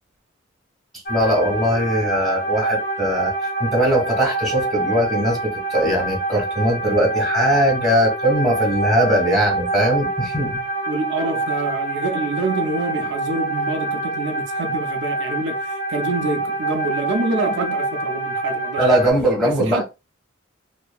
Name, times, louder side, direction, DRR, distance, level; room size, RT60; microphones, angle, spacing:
sound 1, 1.1-19.1, right 2 dB, 50° left, 0.5 m, -26 dB
voice 1, 1.1-3.3 3.6-10.6 18.8-19.8, equal, ahead, 1.5 m, -20 dB
voice 2, 10.9-19.0 19.4-19.8, right 2 dB, 60° right, 0.4 m, -26 dB
2.7 x 2.4 x 2.2 m
head